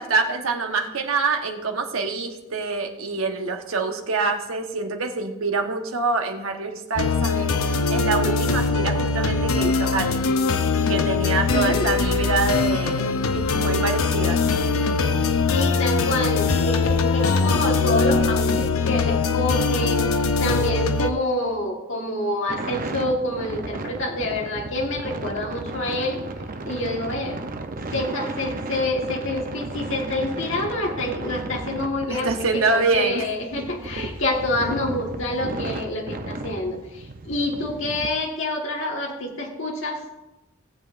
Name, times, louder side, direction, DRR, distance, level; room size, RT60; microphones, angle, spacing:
voice 1, 0.0-10.2 10.9-14.4 32.1-33.3 33.6-33.7, right 3 dB, 70° right, 4 dB, 1.1 m, -25 dB
sound 1, 7.0-21.1, left 4 dB, 75° left, 0.7 m, -22 dB
voice 2, 11.5-11.9 15.5-26.2 26.6-27.4 27.9-40.0, left 1 dB, 60° left, -1 dB, 1.5 m, -27 dB
sound 2, 22.5-38.1, right 2 dB, 40° right, 0.6 m, -34 dB
18.0 x 7.6 x 2.5 m, 1.0 s
head